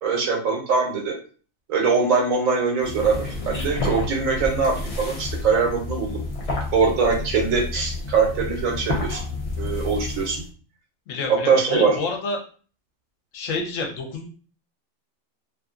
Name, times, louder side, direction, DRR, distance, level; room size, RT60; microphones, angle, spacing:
voice 1, 0.0-1.1 1.7-6.2 6.7-9.2 9.6-10.4 11.3-12.0, right 5 dB, 80° right, 1 dB, 1.2 m, -22 dB
sound 1, 2.8-10.5, left 2 dB, 50° left, 0.4 m, -30 dB
voice 2, 11.1-12.4 13.3-14.3, left 3 dB, 75° left, 3 dB, 1.0 m, -28 dB
2.7 x 2.5 x 2.4 m, 0.39 s
omnidirectional pair, 1.4 m